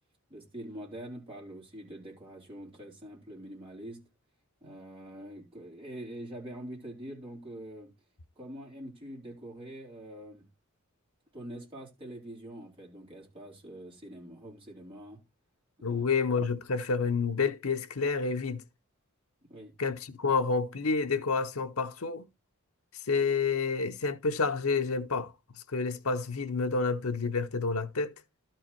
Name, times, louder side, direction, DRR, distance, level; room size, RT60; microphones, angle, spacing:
voice 1, 0.3-4.0 4.6-7.9 8.4-10.5 11.3-15.2 15.8-16.1 19.5-19.7, right 1 dB, 25° right, 4.2 m, -44 dB
voice 2, 15.8-18.6 19.8-22.3 23.1-28.1, left 4 dB, 80° left, 0.8 m, -29 dB
12.5 x 4.6 x 4.5 m
head